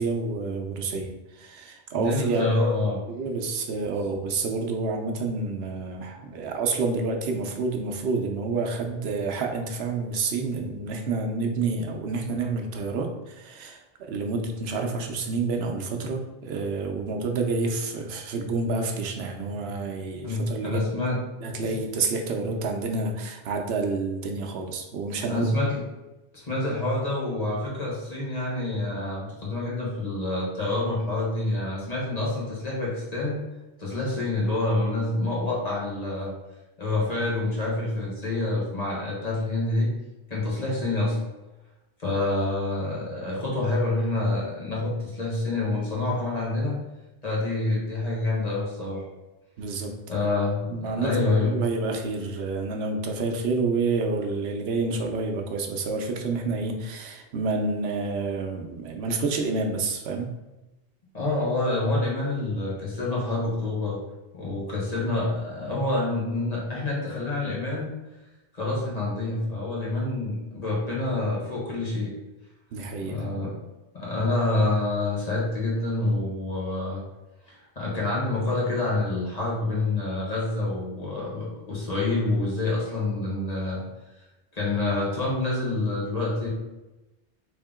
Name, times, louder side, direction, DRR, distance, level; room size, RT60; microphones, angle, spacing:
voice 1, 0.0-2.5 3.1-20.8 21.4-25.4 49.6-49.9 50.7-60.3 72.7-73.3, right 3 dB, 80° right, 3 dB, 0.8 m, -29 dB
voice 2, 1.9-3.0 20.2-21.2 25.3-25.8 26.3-33.4 33.8-36.3 36.8-39.9 40.3-41.2 42.0-46.8 47.2-49.0 50.1-51.5 61.1-64.0 64.3-67.9 68.5-72.1 73.0-73.6 73.9-77.0 77.5-83.8 84.5-86.5, left 2 dB, 40° left, -5 dB, 1.1 m, -27 dB
3.5 x 2.8 x 3.5 m, 1.0 s
omnidirectional pair, 1.1 m